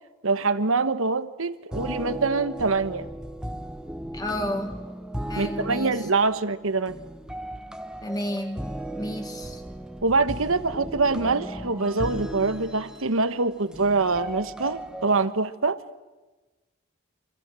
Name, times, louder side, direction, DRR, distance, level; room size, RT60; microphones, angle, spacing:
voice 1, 0.2-3.1 5.4-7.0 10.0-15.8, right 3 dB, 75° right, 1.2 m, -24 dB
sound 1, 1.7-15.3, right 1 dB, 5° right, 1.2 m, -36 dB
voice 2, 4.1-4.7 5.3-6.1 8.0-8.6 9.0-9.6, left 1 dB, 20° left, 1.6 m, -31 dB
29.0 x 26.5 x 7.6 m
head